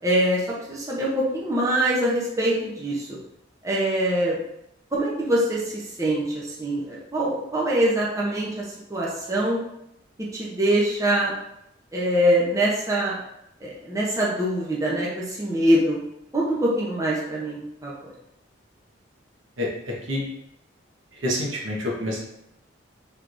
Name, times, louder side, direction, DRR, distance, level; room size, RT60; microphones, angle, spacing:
voice 1, 0.0-3.1 3.6-4.4 4.9-9.6 10.3-11.3 11.9-13.2 13.6-16.0 16.3-18.1, right 1 dB, 15° right, -5 dB, 0.7 m, -24 dB
voice 2, 21.2-22.2, left 1 dB, 80° right, -2 dB, 1.1 m, -26 dB
4.6 x 3.5 x 2.6 m, 0.83 s
head